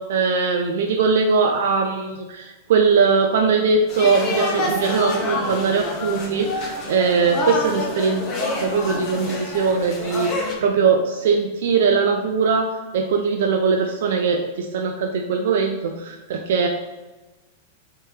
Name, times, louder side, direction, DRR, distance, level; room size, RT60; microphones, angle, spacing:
voice 1, 0.0-8.2 8.6-12.7 12.9-16.7, right 5 dB, 70° right, 3 dB, 0.3 m, -20 dB
sound 1, 3.9-10.5, left 2 dB, 40° left, 0.9 m, -27 dB
3.3 x 2.8 x 3.1 m, 1.1 s
hypercardioid pair, 110°, 0 cm